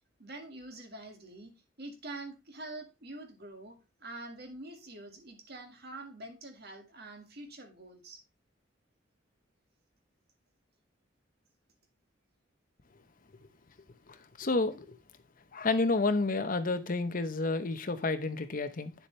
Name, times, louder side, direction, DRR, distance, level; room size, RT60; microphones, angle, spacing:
voice 1, 0.2-1.5 1.8-8.2, right 2 dB, 55° right, 2.0 m, -46 dB
voice 2, 14.1-15.0 15.5-18.9, left 3 dB, 45° left, 0.9 m, -30 dB
9.0 x 7.2 x 3.3 m
head